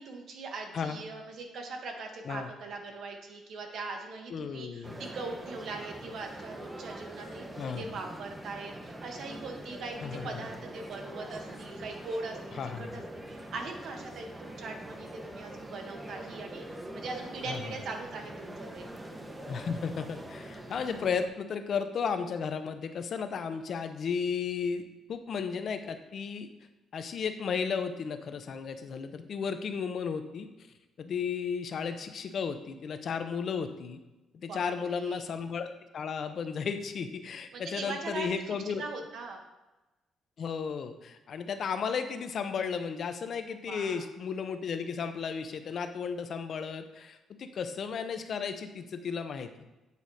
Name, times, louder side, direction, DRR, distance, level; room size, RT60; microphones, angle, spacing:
voice 1, 0.0-18.9 34.5-35.2 37.5-38.3 38.8-39.4 43.6-44.0, right 3 dB, 65° right, 3 dB, 1.3 m, -41 dB
voice 2, 4.3-5.0 7.6-7.9 10.0-10.4 12.5-13.0 17.5-17.6 19.5-26.5 26.9-30.5 31.0-34.0 34.4-38.8 40.4-49.7, left 6 dB, 55° left, 8 dB, 0.7 m, -34 dB
sound 1, 4.8-21.3, right 1 dB, 15° right, 0.9 m, -44 dB
8.3 x 4.7 x 4.1 m, 1.1 s
cardioid pair, 105°, 0 cm